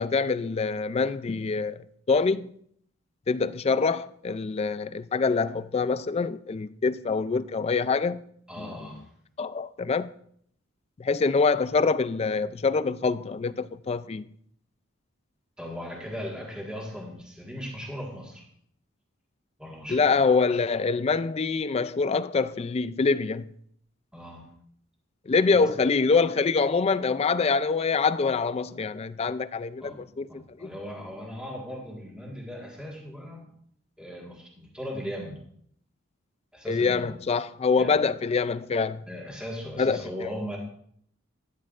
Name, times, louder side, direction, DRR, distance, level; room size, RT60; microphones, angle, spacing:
voice 1, 0.0-2.5 3.3-8.2 9.4-10.1 11.0-14.2 19.9-23.5 25.3-30.3 30.6-30.7 36.7-39.0 39.8-40.3, left 4 dB, 30° left, 0.3 m, -25 dB
voice 2, 8.5-9.1 15.6-18.5 19.6-20.2 24.1-24.5 25.5-25.6 29.8-30.0 30.3-33.5 34.0-35.4 36.5-37.1 37.8-38.0 39.1-40.6, equal, 5° right, 1.6 m, -38 dB
12.5 x 9.7 x 2.5 m
head